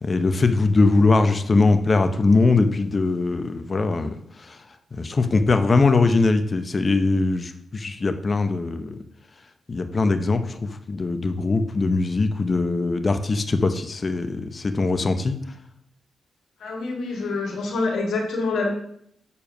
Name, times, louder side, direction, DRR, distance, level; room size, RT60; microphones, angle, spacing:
voice 1, 0.0-4.1 4.5-4.6 5.0-9.0 9.7-15.4, left 3 dB, 40° left, 9 dB, 0.8 m, -21 dB
voice 2, 16.6-18.7, left 3 dB, 75° left, 0 dB, 2.0 m, -26 dB
7.1 x 4.6 x 5.1 m, 0.68 s
hypercardioid pair, 40°, 0 cm